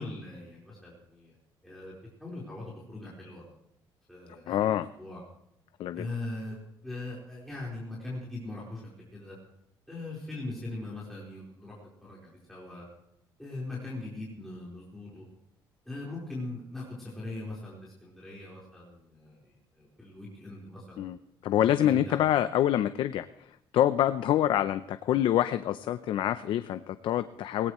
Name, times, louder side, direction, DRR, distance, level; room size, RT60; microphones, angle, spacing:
voice 1, 0.0-1.3 1.6-1.9 2.2-3.4 4.1-5.2 5.9-6.6 6.8-9.4 9.9-12.8 13.4-15.2 15.9-21.1 21.7-22.2, left 2 dB, 5° left, -6 dB, 4.2 m, -40 dB
voice 2, 4.5-4.9 5.8-6.1 21.0-21.2 21.4-23.3 23.7-27.7, left 11 dB, 70° left, 11 dB, 0.6 m, -26 dB
19.5 x 17.5 x 3.1 m, 0.78 s
cardioid pair, 125°, 9 cm